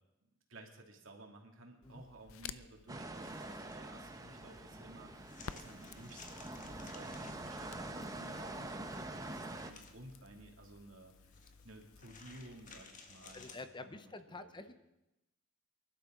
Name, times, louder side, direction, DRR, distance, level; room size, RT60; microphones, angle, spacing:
voice 1, 0.5-11.1 11.6-14.7, right 1 dB, 70° right, 1 dB, 2.5 m, -55 dB
Crackle, 1.8-12.8, left 7 dB, 80° left, 0.5 m, -55 dB
sound 1, 2.9-9.7, right 2 dB, 15° right, 0.9 m, -45 dB
sound 2, 3.1-13.5, left 4 dB, 40° left, 1.6 m, -59 dB
voice 2, 13.3-14.7, left 3 dB, 25° left, 10 dB, 0.7 m, -49 dB
24.0 x 12.0 x 3.8 m, 0.92 s
head